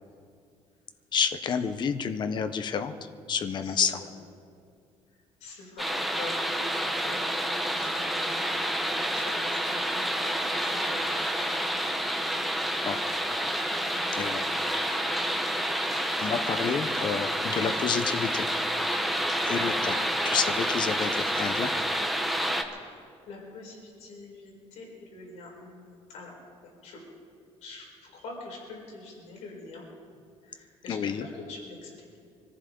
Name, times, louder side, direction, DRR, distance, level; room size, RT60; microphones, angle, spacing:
voice 1, 1.1-4.0 12.8-13.0 14.2-14.5 14.8-14.9 16.2-18.5 19.4-19.9 20.2-21.7 30.9-31.3, left 6 dB, 40° left, 9 dB, 0.8 m, -29 dB
voice 2, 3.6-4.1 5.4-8.7 9.1-11.6 13.7-14.4 19.5-19.7 22.7-26.3 26.6-27.0 27.6-29.8 30.4-32.2, left 3 dB, 80° left, -2 dB, 4.7 m, -45 dB
sound 1, 5.8-22.6, equal, ahead, 1.0 m, -29 dB
24.5 x 14.5 x 3.9 m, 2.3 s
cardioid pair, 155°, 12 cm